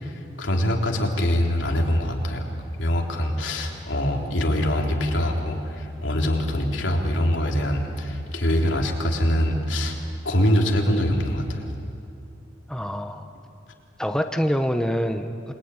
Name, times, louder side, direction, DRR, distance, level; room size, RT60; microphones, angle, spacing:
voice 1, 0.0-2.5 2.8-10.0 10.3-11.7, equal, 85° left, 1 dB, 3.6 m, -24 dB
voice 2, 12.7-13.3 14.0-15.5, equal, 5° left, 6 dB, 0.9 m, -25 dB
28.5 x 21.5 x 9.7 m, 2.6 s
head